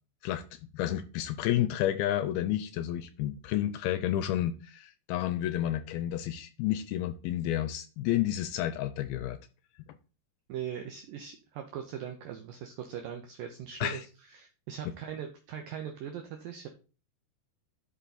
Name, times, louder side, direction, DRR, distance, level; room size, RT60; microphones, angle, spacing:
voice 1, 0.2-9.4 13.8-14.1, left 12 dB, 80° left, 12 dB, 2.3 m, -31 dB
voice 2, 10.5-14.1 14.3-16.7, right 9 dB, 70° right, 4 dB, 2.2 m, -40 dB
12.0 x 5.3 x 4.2 m, 0.34 s
omnidirectional pair, 4.8 m